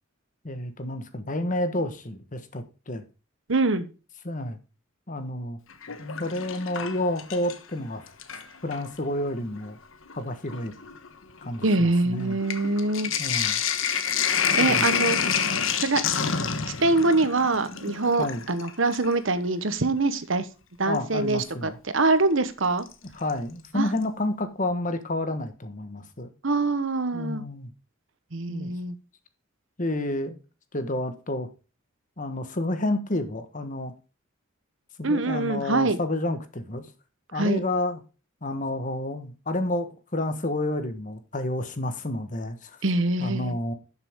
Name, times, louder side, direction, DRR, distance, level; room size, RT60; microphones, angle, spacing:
voice 1, 0.4-3.0 4.2-4.6 5.1-5.6 6.2-8.1 8.6-9.8 10.1-10.7 11.4-12.4 13.2-13.6 14.6-14.8 18.2-18.4 20.8-21.8 23.1-26.3 27.1-27.7 28.5-28.7 29.8-30.4 30.7-31.5 32.2-33.9 35.0-36.9 37.3-38.0 38.4-42.8 43.2-43.7, left 1 dB, 40° left, 1.4 m, -30 dB
voice 2, 3.5-3.9 11.6-13.1 14.5-15.4 15.8-16.0 16.8-20.5 20.8-22.8 23.7-23.9 26.4-27.4 28.3-28.9 35.0-36.0 37.3-37.6 42.8-43.5, right 3 dB, 65° right, 1.1 m, -24 dB
Sink (filling or washing), 5.7-7.7 8.1-8.9 9.7-9.8 10.1-19.2 20.9-21.0 22.9-23.3 23.6-23.7 24.0-24.1, left 7 dB, 70° left, 1.2 m, -28 dB
12.0 x 6.9 x 3.7 m
head